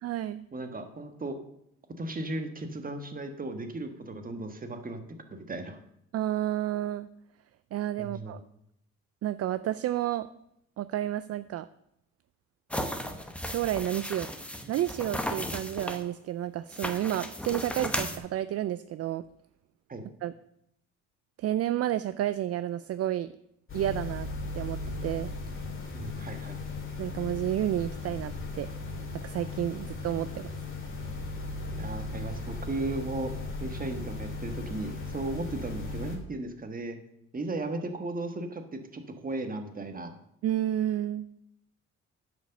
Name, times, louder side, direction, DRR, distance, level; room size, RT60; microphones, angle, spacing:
voice 1, 0.0-0.4 6.1-7.1 7.7-8.4 9.2-10.3 10.8-11.7 13.4-14.3 14.7-19.2 20.2-20.3 21.4-23.3 23.7-24.3 24.5-25.3 27.0-28.7 29.1-30.5 40.4-41.3, right 12 dB, 55° right, 14 dB, 0.4 m, -31 dB
voice 2, 0.5-1.4 2.0-5.8 8.0-8.4 19.9-20.0 25.9-26.6 31.8-33.3 33.6-37.0 37.3-40.1, right 2 dB, 30° right, 6 dB, 1.4 m, -36 dB
sound 1, 12.7-16.0 16.7-18.2, equal, 5° left, 1.0 m, -35 dB
sound 2, 23.7-36.2, left 3 dB, 40° left, 2.6 m, -37 dB
10.5 x 5.2 x 6.6 m, 0.77 s
cardioid pair, 90°, 30 cm